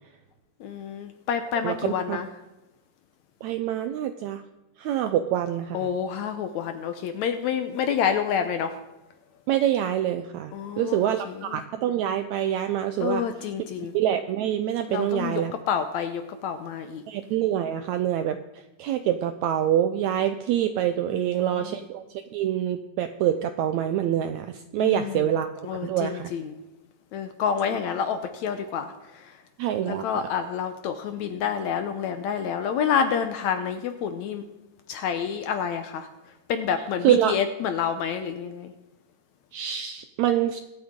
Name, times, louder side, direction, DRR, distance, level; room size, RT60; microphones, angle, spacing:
voice 1, 0.6-2.3 5.7-8.7 10.5-11.6 13.0-14.0 14.9-15.4 15.7-17.0 21.1-21.8 24.8-25.3 25.6-26.5 27.1-28.9 29.8-34.4 34.9-36.1 36.5-38.7, left 7 dB, 75° left, 8 dB, 1.8 m, -28 dB
voice 2, 1.6-2.2 3.4-4.4 4.8-5.8 9.5-10.5 10.8-13.2 13.9-15.5 17.1-18.4 18.8-22.0 22.3-26.3 29.6-30.2 37.0-37.4 39.5-40.6, right 11 dB, 80° right, 9 dB, 1.6 m, -25 dB
23.0 x 8.8 x 3.7 m, 1.0 s
omnidirectional pair, 3.9 m